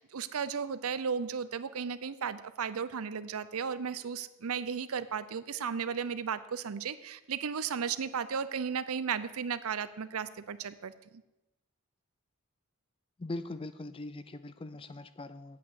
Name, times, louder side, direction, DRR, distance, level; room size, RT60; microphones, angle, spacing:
voice 1, 0.0-11.2, right 6 dB, 80° right, 14 dB, 0.6 m, -35 dB
voice 2, 13.2-15.6, left 2 dB, 25° left, 13 dB, 0.4 m, -41 dB
8.5 x 8.4 x 7.1 m, 0.97 s
head